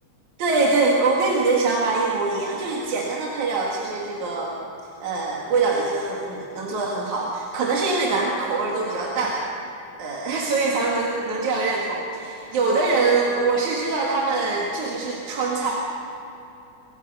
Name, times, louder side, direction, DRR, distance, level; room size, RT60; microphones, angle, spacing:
voice 1, 0.4-4.6 5.0-9.4 10.0-15.7, right 3 dB, 75° right, -3 dB, 3.4 m, -23 dB
25.5 x 23.0 x 5.5 m, 2.9 s
omnidirectional pair, 3.4 m